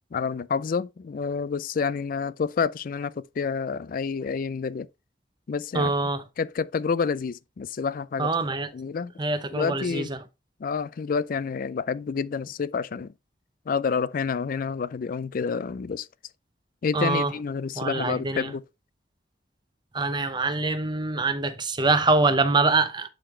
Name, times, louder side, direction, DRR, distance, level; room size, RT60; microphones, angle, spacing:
voice 1, 0.1-4.9 5.5-5.9 6.4-8.3 8.7-9.1 9.5-10.1 10.6-13.1 13.7-16.1 16.8-18.6, left 5 dB, 50° left, 0.4 m, -28 dB
voice 2, 5.7-6.2 8.2-8.7 9.2-10.2 16.9-17.3 17.8-18.5 19.9-23.1, right 3 dB, 25° right, 0.7 m, -24 dB
9.9 x 3.7 x 3.2 m
head